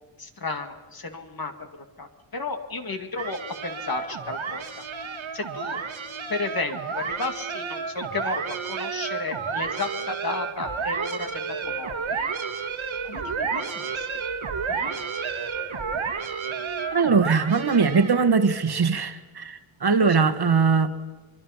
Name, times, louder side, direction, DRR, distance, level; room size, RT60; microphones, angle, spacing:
voice 1, 0.2-1.5 2.0-2.1 2.3-4.6 5.3-5.8 6.3-12.3 13.0-14.1 14.7-15.0 19.9-20.1, left 3 dB, 50° left, 2.2 m, -33 dB
sound 1, 3.2-18.3, right 5 dB, 80° right, 1.8 m, -31 dB
voice 2, 16.9-20.9, right 5 dB, 55° right, 1.6 m, -21 dB
24.5 x 23.5 x 5.8 m
wide cardioid pair, 120°, 47 cm